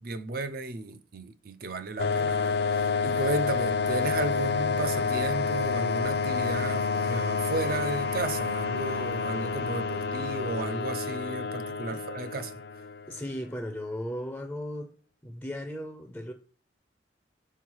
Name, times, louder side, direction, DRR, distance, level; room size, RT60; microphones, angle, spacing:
voice 1, 0.0-12.5, right 2 dB, 50° right, 0.6 m, -34 dB
sound 1, 2.0-13.4, left 5 dB, 60° left, 0.5 m, -29 dB
voice 2, 13.1-14.9 15.2-16.3, equal, 5° left, 0.5 m, -36 dB
5.7 x 4.6 x 4.7 m
head